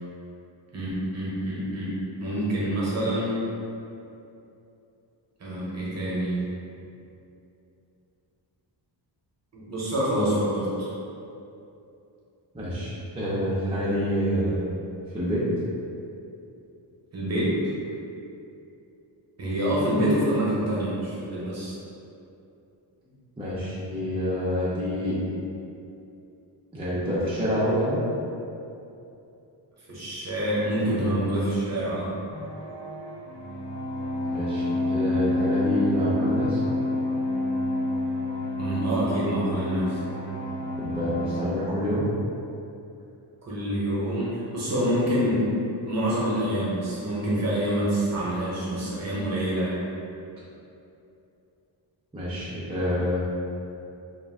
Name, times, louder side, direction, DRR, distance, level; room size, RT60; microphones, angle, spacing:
voice 1, 0.7-3.4 5.4-6.4 9.5-10.9 17.1-17.6 19.4-21.7 29.9-32.1 38.6-40.0 43.4-45.5 45.9-49.8, equal, 35° right, -7 dB, 0.8 m, -26 dB
voice 2, 12.5-14.6 15.1-15.4 23.4-25.2 26.7-28.0 34.3-36.6 40.8-42.1 52.1-53.2, equal, 15° right, -10 dB, 0.4 m, -27 dB
sound 1, 32.3-41.5, left 1 dB, 85° left, 0.8 m, -28 dB
2.4 x 2.1 x 3.3 m, 2.7 s
wide cardioid pair, 135°, 46 cm